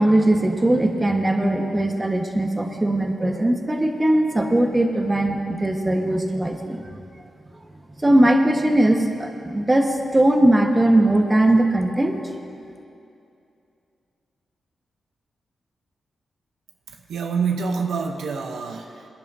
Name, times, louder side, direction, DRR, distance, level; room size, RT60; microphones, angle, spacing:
voice 1, 0.0-6.9 8.0-12.3, right 1 dB, 20° right, 3 dB, 1.3 m, -19 dB
voice 2, 16.9-19.1, right 5 dB, 90° right, 3 dB, 0.8 m, -27 dB
24.0 x 10.5 x 2.7 m, 2.6 s
cardioid pair, 65°, 0 cm